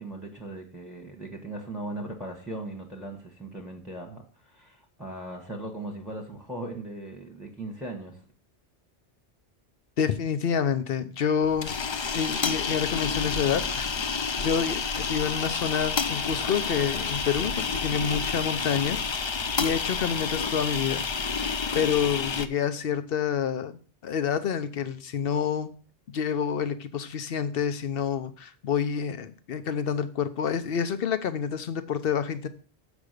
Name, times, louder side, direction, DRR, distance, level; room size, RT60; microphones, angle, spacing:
voice 1, 0.0-8.2, right 2 dB, ahead, 1 dB, 1.1 m, -38 dB
voice 2, 10.0-11.7 12.1-13.9 14.4-21.0 21.4-21.5 21.7-25.7 26.1-32.5, left 7 dB, 65° left, 11 dB, 0.9 m, -28 dB
sound 1, 11.4-22.5, left 5 dB, 45° left, 0.3 m, -29 dB
7.2 x 5.0 x 6.6 m, 0.41 s
omnidirectional pair, 1.1 m